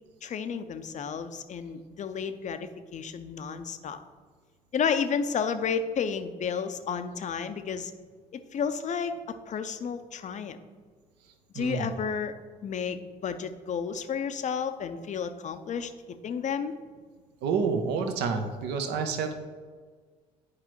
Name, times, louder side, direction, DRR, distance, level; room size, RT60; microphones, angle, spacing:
voice 1, 0.2-4.0 4.7-7.9 8.5-10.6 11.5-12.3 12.6-15.9 16.2-16.7, left 6 dB, 40° left, 9 dB, 0.6 m, -31 dB
voice 2, 11.5-11.9 17.4-19.3, right 5 dB, 60° right, 6 dB, 0.8 m, -29 dB
10.0 x 4.8 x 3.1 m, 1.5 s
figure-of-eight pair, 50°, 19 cm